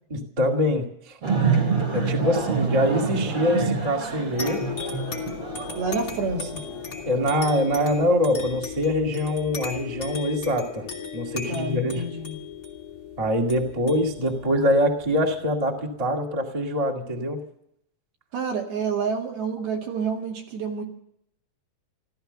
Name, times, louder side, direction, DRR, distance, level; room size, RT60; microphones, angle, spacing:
voice 1, 0.1-1.2 1.9-4.6 7.0-10.8 11.1-12.0 13.2-17.4, equal, 20° right, 1 dB, 0.9 m, -24 dB
sound 1, 1.2-8.1, right 5 dB, 35° right, 4.3 m, -28 dB
sound 2, 4.4-15.5, left 7 dB, 25° left, 2.8 m, -36 dB
voice 2, 5.8-6.6 11.5-12.4 18.3-20.8, right 4 dB, 70° right, 1 dB, 4.1 m, -29 dB
15.0 x 14.0 x 6.8 m, 0.73 s
omnidirectional pair, 4.6 m